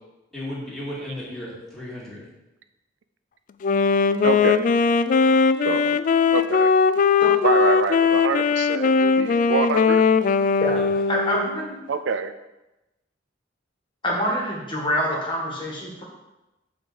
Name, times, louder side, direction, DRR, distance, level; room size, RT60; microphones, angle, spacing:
voice 1, 0.3-2.3 10.7-10.9, left 1 dB, ahead, -7 dB, 2.5 m, -35 dB
Wind instrument woodwind instrument, 3.6-11.7, left 5 dB, 45° left, 0.3 m, -19 dB
voice 2, 4.2-4.7 5.6-6.0 6.3-6.7 7.4-10.0 11.9-12.3, right 5 dB, 75° right, 10 dB, 0.4 m, -26 dB
voice 3, 11.1-11.8 14.0-16.0, equal, 25° left, -2 dB, 1.8 m, -26 dB
7.5 x 4.0 x 6.8 m, 0.97 s
head